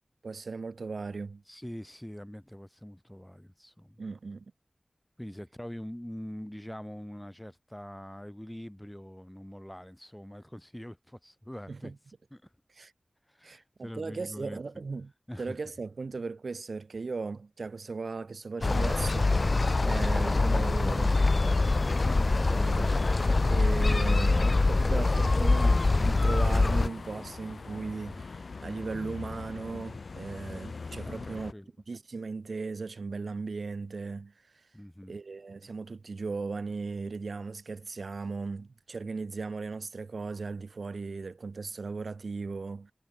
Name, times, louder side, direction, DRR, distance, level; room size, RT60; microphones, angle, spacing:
voice 1, 0.2-1.4 4.0-4.4 11.7-11.9 12.8-12.9 13.4-15.1 15.4-19.6 19.8-21.2 22.2-31.5 31.9-34.3 35.1-42.9, right 4 dB, 90° right, 4.9 m, -37 dB
voice 2, 1.5-4.0 5.2-12.0 12.3-12.5 13.3-14.6 15.3-15.6 22.0-22.3 23.9-24.1 31.0-31.7 34.7-35.2, equal, 10° left, 6.3 m, -44 dB
sound 1, 18.6-26.9, left 3 dB, 55° left, 0.6 m, -24 dB
sound 2, 22.0-31.5, left 4 dB, 85° left, 7.2 m, -43 dB
wide cardioid pair, 80°, 0 cm